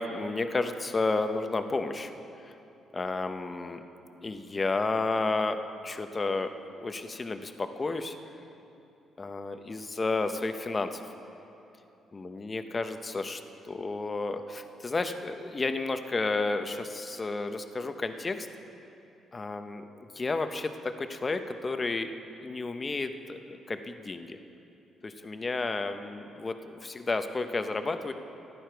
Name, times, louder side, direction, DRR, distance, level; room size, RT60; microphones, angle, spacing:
voice 1, 0.0-2.1 2.4-2.5 2.9-3.8 4.2-8.2 9.2-11.0 12.1-18.5 19.3-24.4 25.0-28.1, left 3 dB, 30° left, 8 dB, 0.8 m, -32 dB
15.0 x 11.0 x 4.6 m, 2.9 s
cardioid pair, 90°, 0 cm